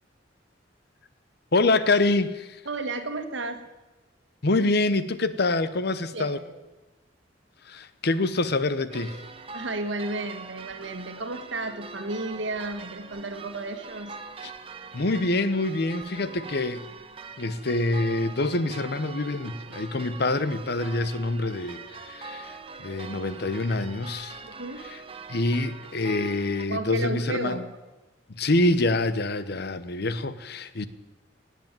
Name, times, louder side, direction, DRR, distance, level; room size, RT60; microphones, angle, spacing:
voice 1, 1.5-2.6 4.4-6.4 7.7-9.2 14.4-14.5 14.9-16.9 17.4-22.5 22.8-24.4 24.9-25.0 25.3-27.6 28.3-30.9, left 2 dB, 60° left, 0.9 m, -26 dB
voice 2, 2.6-3.7 6.1-6.5 9.5-14.1 24.4-24.9 26.7-27.8, right 2 dB, 85° right, 1.7 m, -33 dB
sound 1, 8.9-26.6, right 4 dB, 30° right, 1.0 m, -43 dB
18.5 x 8.4 x 8.9 m
head